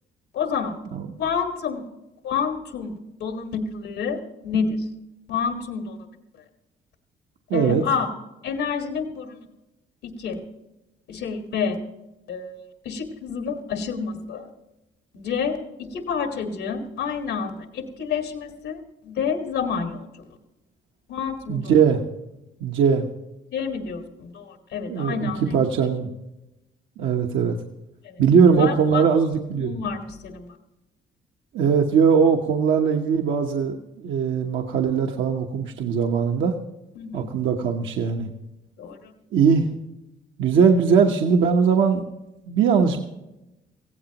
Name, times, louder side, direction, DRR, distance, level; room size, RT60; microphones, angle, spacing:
voice 1, 0.3-0.8 1.2-1.9 2.2-4.2 4.4-4.9 5.3-6.0 7.5-8.1 8.4-9.5 10.0-10.4 11.1-11.8 12.3-14.5 15.1-20.2 21.1-21.7 23.5-25.6 28.0-28.2 28.5-29.0 29.5-30.5 36.9-37.3 38.8-39.1, left 6 dB, 90° left, 4 dB, 1.8 m, -29 dB
voice 2, 7.5-7.8 21.5-22.0 22.6-23.1 24.9-26.1 27.0-27.6 28.2-29.8 31.5-33.8 34.0-36.5 37.1-38.3 39.3-39.7 40.4-42.0 42.5-43.0, right 6 dB, 80° right, 2 dB, 1.1 m, -20 dB
18.5 x 15.5 x 3.0 m, 0.96 s
cardioid pair, 90°, 20 cm